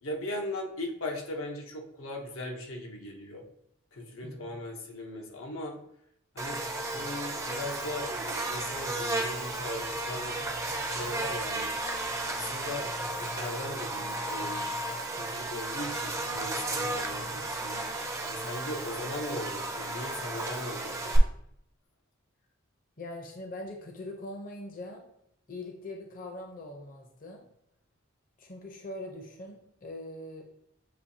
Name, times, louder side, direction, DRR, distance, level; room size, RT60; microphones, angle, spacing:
voice 1, 0.0-3.4 3.9-5.8 6.3-8.1 8.4-10.4 10.8-11.8 12.2-14.7 15.1-17.9 18.2-21.3, left 1 dB, 90° left, 0 dB, 0.9 m, -39 dB
voice 2, 4.2-4.6 23.0-25.0 25.5-27.4 28.4-30.4, left 1 dB, 45° left, 2 dB, 0.6 m, -42 dB
Buzz, 6.4-21.2, right 2 dB, 15° right, 0.4 m, -34 dB
6.9 x 2.7 x 2.7 m, 0.74 s
head